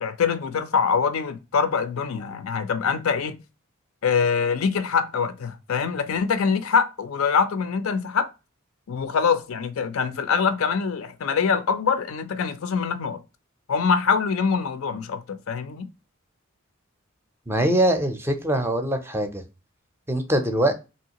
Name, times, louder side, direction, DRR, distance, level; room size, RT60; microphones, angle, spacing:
voice 1, 0.0-3.4 4.0-8.3 8.9-13.2 13.7-15.9, left 6 dB, 75° left, 0.4 m, -24 dB
voice 2, 17.5-19.4 20.1-20.7, right 1 dB, 10° right, 0.5 m, -23 dB
3.1 x 2.8 x 2.8 m
head